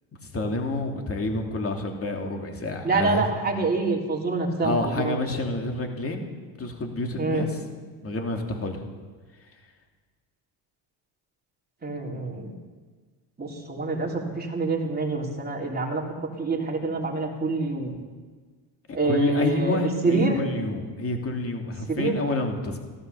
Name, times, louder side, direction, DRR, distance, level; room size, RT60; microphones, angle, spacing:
voice 1, 0.2-3.3 4.6-6.3 6.6-7.6 8.0-8.8 18.9-22.8, left 2 dB, 30° left, 3 dB, 2.8 m, -29 dB
voice 2, 2.8-5.2 7.2-7.5 11.8-12.5 13.4-16.0 16.4-17.9 18.9-19.8 20.0-20.4 21.9-22.2, right 3 dB, 20° right, -1 dB, 3.4 m, -26 dB
15.0 x 13.5 x 6.9 m, 1.5 s
supercardioid pair, 100°, 47 cm